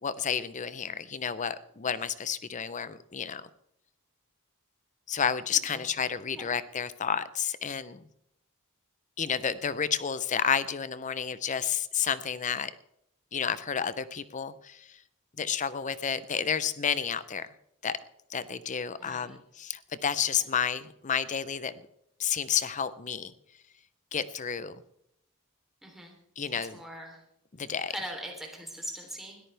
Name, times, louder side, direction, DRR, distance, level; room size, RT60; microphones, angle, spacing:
voice 1, 0.0-3.5 5.1-8.0 9.2-12.7 13.3-15.0 15.4-17.5 17.8-18.0 18.3-21.7 22.2-23.3 24.1-24.8 26.4-26.8 27.5-27.9, left 7 dB, 35° left, 15 dB, 0.6 m, -31 dB
voice 2, 5.5-5.8 6.3-6.5 19.0-19.4 20.4-20.5 25.8-26.2 26.5-27.2 27.9-29.4, right 1 dB, ahead, 0 dB, 3.2 m, -41 dB
20.5 x 13.5 x 3.4 m, 0.76 s
head